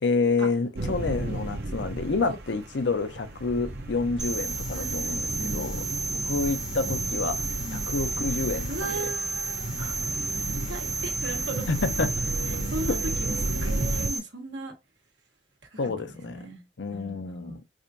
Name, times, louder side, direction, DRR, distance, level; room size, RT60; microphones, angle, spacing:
voice 1, 0.0-5.8 6.2-7.4 7.7-9.1 9.8-9.9 11.7-12.1 12.9-13.0 15.8-16.4 16.8-17.6, left 4 dB, 80° left, 0.7 m, -28 dB
sound 1, 0.8-14.1, right 2 dB, 60° right, 0.7 m, -33 dB
sound 2, 4.2-14.2, right 4 dB, 5° right, 0.7 m, -32 dB
voice 2, 4.7-5.7 7.6-7.9 8.7-10.2 10.5-11.7 12.5-14.7 15.7-17.6, right 2 dB, 85° right, 1.3 m, -38 dB
4.8 x 2.6 x 2.7 m
head